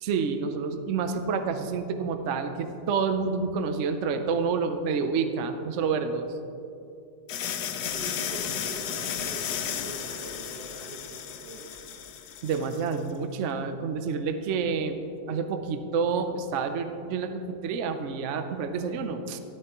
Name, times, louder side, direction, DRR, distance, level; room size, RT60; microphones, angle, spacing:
voice 1, 0.0-6.3 12.4-19.4, right 5 dB, 60° right, 8 dB, 0.8 m, -28 dB
sound 1, 7.3-13.0, left 8 dB, 70° left, 1.2 m, -34 dB
voice 2, 7.9-11.7, right 2 dB, 80° right, 0 dB, 2.0 m, -43 dB
13.0 x 12.0 x 3.0 m, 2.6 s
omnidirectional pair, 1.9 m